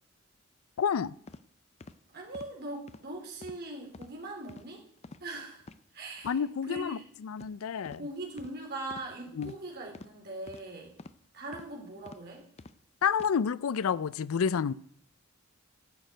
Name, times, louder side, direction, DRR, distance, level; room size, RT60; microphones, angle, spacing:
voice 1, 0.8-1.1 6.2-8.0 9.4-9.5 13.0-14.7, left 7 dB, 90° left, 21 dB, 0.4 m, -29 dB
sound 1, 1.3-1.4 1.8-2.0 2.3-2.5 2.9-3.0 3.4-3.6 3.9-4.1 4.5-4.7 5.0-5.2 5.6-5.8 6.2-6.4 6.7-6.9 7.4-7.5 7.8-8.0 8.4-8.5 8.9-9.1 9.4-9.6 9.9-10.1 10.5-10.6 11.0-11.2 11.5-11.7 12.1-12.2 12.6-12.8 13.1-13.3, left 3 dB, 30° left, 0.5 m, -48 dB
voice 2, 2.1-4.8 5.2-5.6 5.9-6.4 6.7-7.0 8.0-10.9 11.3-12.4, right 2 dB, 50° right, 0 dB, 3.4 m, -41 dB
11.0 x 6.6 x 9.1 m, 0.66 s
head